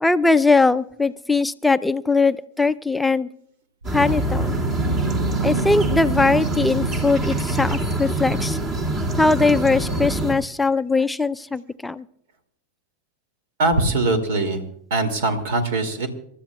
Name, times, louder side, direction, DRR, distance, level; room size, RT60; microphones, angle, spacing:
voice 1, 0.0-3.3 3.9-4.6 5.4-8.6 9.2-12.0, left 3 dB, 5° left, 14 dB, 0.5 m, -20 dB
sound 1, 3.8-10.3, right 1 dB, 35° right, 2.7 m, -25 dB
sound 2, 3.8-8.2, right 6 dB, 80° right, 0.6 m, -29 dB
voice 2, 13.6-16.1, right 2 dB, 65° right, 8 dB, 2.5 m, -22 dB
28.0 x 13.0 x 2.3 m, 0.69 s
hypercardioid pair, 95°, 0 cm